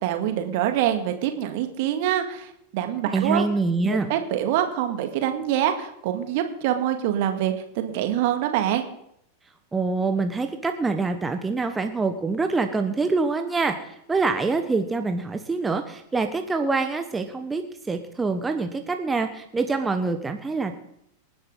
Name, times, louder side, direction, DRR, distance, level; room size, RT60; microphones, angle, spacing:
voice 1, 0.0-3.4 3.8-8.9, right 11 dB, 50° right, 6 dB, 2.1 m, -25 dB
voice 2, 3.1-4.1 9.7-20.7, right 3 dB, 10° right, 6 dB, 1.2 m, -25 dB
27.0 x 10.5 x 4.0 m, 0.74 s
figure-of-eight pair, 90°, 0 cm